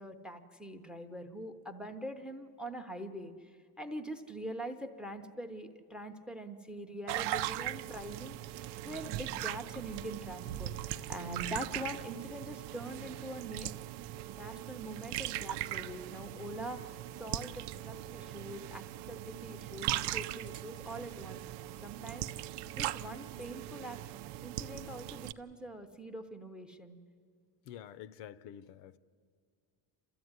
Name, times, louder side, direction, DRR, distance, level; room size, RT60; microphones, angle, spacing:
voice 1, 0.0-8.5 8.8-13.7 14.3-24.0 24.4-27.0, right 1 dB, ahead, 9 dB, 0.6 m, -44 dB
sound 1, 7.1-25.3, right 13 dB, 65° right, 0.7 m, -40 dB
voice 2, 27.7-29.0, left 10 dB, 70° left, 17 dB, 0.8 m, -48 dB
29.0 x 14.0 x 9.6 m, 2.1 s
cardioid pair, 175°, 44 cm